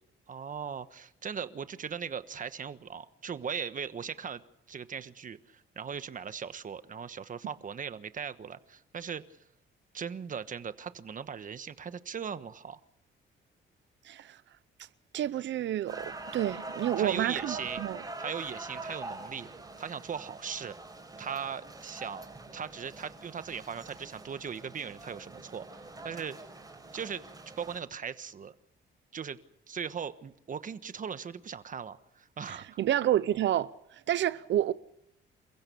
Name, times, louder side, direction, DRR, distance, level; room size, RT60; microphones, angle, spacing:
voice 1, 0.3-4.4 4.7-9.2 9.9-12.8 17.0-17.8 18.2-19.5 19.8-20.8 21.2-26.4 26.9-27.2 27.6-28.5 29.1-29.4 29.7-32.8, right 7 dB, 40° right, 1.3 m, -39 dB
voice 2, 14.0-14.4 15.1-18.0 32.5-34.7, right 12 dB, 70° right, 0.8 m, -29 dB
sound 1, 15.9-27.8, right 2 dB, 20° right, 5.8 m, -44 dB
28.5 x 15.5 x 6.9 m
cardioid pair, 90°, 20 cm